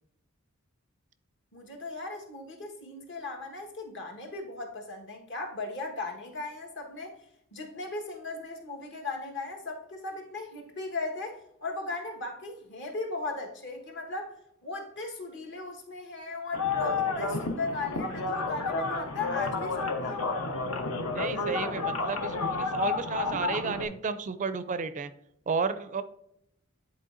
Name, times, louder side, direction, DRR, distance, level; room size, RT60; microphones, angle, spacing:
voice 1, 1.5-7.2 7.5-14.3 14.6-20.3, left 3 dB, 60° left, 2 dB, 1.3 m, -37 dB
sound 1, 16.5-23.8, left 3 dB, 80° left, 0.9 m, -31 dB
voice 2, 21.1-25.1 25.5-26.0, right 5 dB, 35° right, 12 dB, 0.4 m, -32 dB
10.0 x 4.2 x 2.5 m, 0.77 s
head